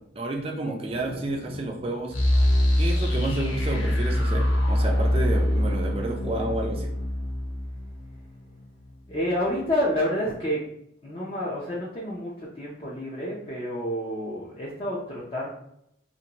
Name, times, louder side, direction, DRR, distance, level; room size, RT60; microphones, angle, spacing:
voice 1, 0.2-2.2 2.8-6.9, right 2 dB, 30° right, 2 dB, 0.4 m, -30 dB
voice 2, 0.8-1.2 1.5-1.7 9.1-10.6 11.0-15.5, equal, 25° left, -6 dB, 0.5 m, -29 dB
sound 1, 2.1-8.9, left 1 dB, 80° left, 0.7 m, -24 dB
2.6 x 2.5 x 2.9 m, 0.74 s
head